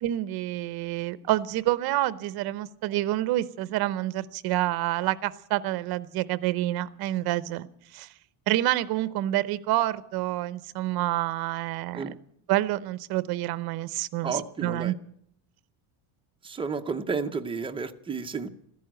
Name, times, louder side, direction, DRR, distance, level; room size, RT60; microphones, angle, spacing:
voice 1, 0.0-7.7 7.9-8.1 8.5-12.1 12.5-14.9, right 15 dB, 50° right, 16 dB, 0.8 m, -28 dB
voice 2, 14.2-14.9 16.4-18.5, right 5 dB, 10° right, 5 dB, 0.6 m, -32 dB
14.5 x 11.0 x 8.9 m, 0.71 s
cardioid pair, 160°, 46 cm